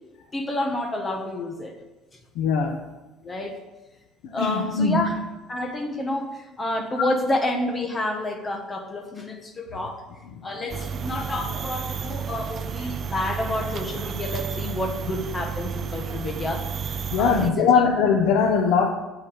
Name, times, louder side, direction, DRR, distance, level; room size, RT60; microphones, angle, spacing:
voice 1, 0.3-1.7 3.2-3.6 4.3-5.2 5.5-10.0 10.4-18.0, left 1 dB, 15° left, 3 dB, 1.4 m, -29 dB
voice 2, 2.3-2.9 4.2-5.0 17.1-18.9, left 5 dB, 65° left, 2 dB, 1.1 m, -21 dB
sound 1, 10.7-17.5, right 6 dB, 30° right, 0.4 m, -31 dB
8.3 x 8.1 x 8.9 m, 1.1 s
cardioid pair, 175°, 0 cm